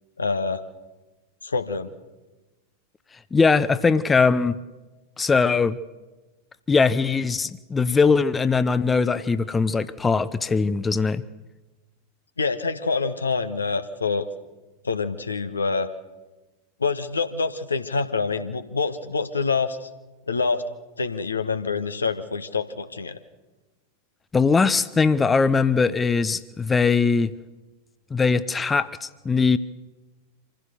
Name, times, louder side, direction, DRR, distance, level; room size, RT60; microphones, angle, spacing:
voice 1, 0.2-0.6 1.4-1.9 12.4-14.2 14.8-15.9 16.8-19.9 20.3-20.6 21.0-23.2, left 4 dB, 75° left, 10 dB, 1.2 m, -26 dB
voice 2, 3.3-4.6 5.2-5.8 6.7-11.2 24.3-27.3 28.1-29.6, left 4 dB, 15° left, 14 dB, 0.7 m, -21 dB
26.0 x 15.5 x 6.9 m, 1.2 s
figure-of-eight pair, 90°, 0 cm